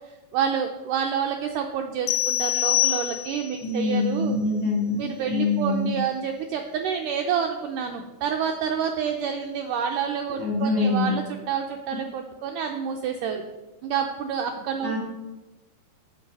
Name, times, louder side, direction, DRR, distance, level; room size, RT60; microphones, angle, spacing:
voice 1, 0.3-4.4 5.0-13.4 13.8-15.0, right 7 dB, 90° right, 4 dB, 1.8 m, -28 dB
sound 1, 2.1-3.6, left 14 dB, 90° left, 2.5 m, -24 dB
voice 2, 3.6-5.0 5.3-5.9 10.4-11.1 14.8-15.0, left 3 dB, 30° left, -2 dB, 1.6 m, -24 dB
8.7 x 7.3 x 5.3 m, 1.1 s
omnidirectional pair, 4.4 m